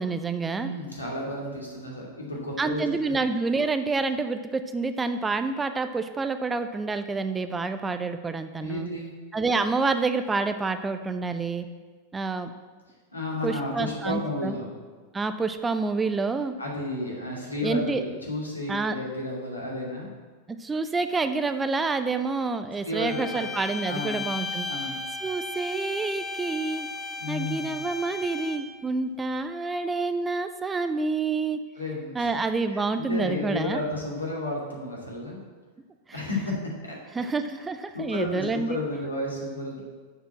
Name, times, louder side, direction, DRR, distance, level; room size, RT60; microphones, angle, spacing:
voice 1, 0.0-0.7 2.6-8.9 9.3-11.7 12.1-12.5 13.4-14.5 15.1-16.5 17.6-18.0 18.7-19.0 20.6-24.7 25.2-26.9 27.3-31.6 32.1-33.8 36.1-36.2 37.1-38.8, right 3 dB, 15° right, 9 dB, 0.5 m, -28 dB
voice 2, 0.6-2.8 8.6-9.1 13.1-14.7 16.6-20.1 22.8-23.4 23.8-24.2 24.6-25.0 27.2-27.7 31.8-32.3 32.9-35.4 36.1-37.0 37.9-39.8, left 1 dB, 80° left, -3 dB, 2.5 m, -32 dB
sound 1, 23.0-28.8, left 3 dB, 10° left, 1.0 m, -35 dB
6.9 x 6.7 x 7.5 m, 1.4 s
figure-of-eight pair, 90°, 0 cm